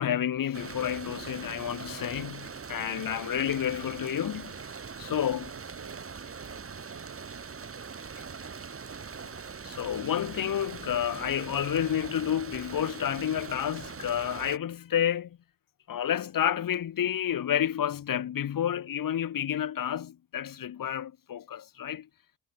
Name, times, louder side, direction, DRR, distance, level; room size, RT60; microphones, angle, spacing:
voice 1, 0.0-4.7 5.0-5.5 9.6-15.4 15.9-22.1, left 10 dB, 60° left, 1.7 m, -30 dB
sound 1, 0.5-14.6, right 5 dB, 35° right, 3.1 m, -42 dB
voice 2, 4.9-7.8 8.1-8.8, right 8 dB, 60° right, 6.2 m, -56 dB
cardioid pair, 95°, 38 cm